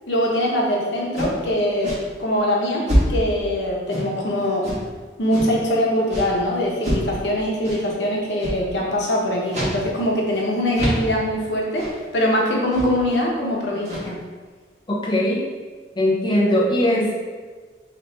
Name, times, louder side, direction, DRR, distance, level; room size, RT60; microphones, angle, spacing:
voice 1, 0.1-1.9 2.2-4.7 5.2-14.2, equal, 90° left, -2 dB, 0.9 m, -22 dB
sound 1, 1.1-1.4 1.8-2.0 2.9-3.3 3.9-4.2 4.6-4.8 5.3-5.6 6.1-6.3 6.8-7.1 7.6-7.8 8.4-8.6 9.5-9.8 10.1-10.2 10.7-11.1 11.8-12.0 12.7-13.0 13.7-14.2, equal, 40° right, 1.3 m, -25 dB
voice 2, 14.9-15.5 16.0-17.1, left 1 dB, 25° left, -4 dB, 0.5 m, -20 dB
4.0 x 2.9 x 3.2 m, 1.5 s
head